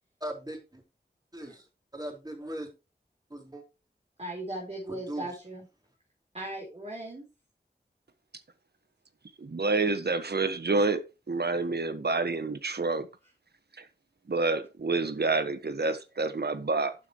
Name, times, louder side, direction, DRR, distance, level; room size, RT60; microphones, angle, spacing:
voice 1, 0.2-0.8 1.3-1.6 1.9-2.7 3.3-3.6 4.9-5.3, right 1 dB, 20° right, 4.4 m, -38 dB
voice 2, 4.2-5.6 6.3-7.2, right 1 dB, 35° right, 4.2 m, -38 dB
voice 3, 9.4-13.1 13.8-13.9 14.3-16.9, right 3 dB, 70° right, 1.4 m, -28 dB
12.0 x 7.9 x 3.1 m
wide cardioid pair, 55°, 18 cm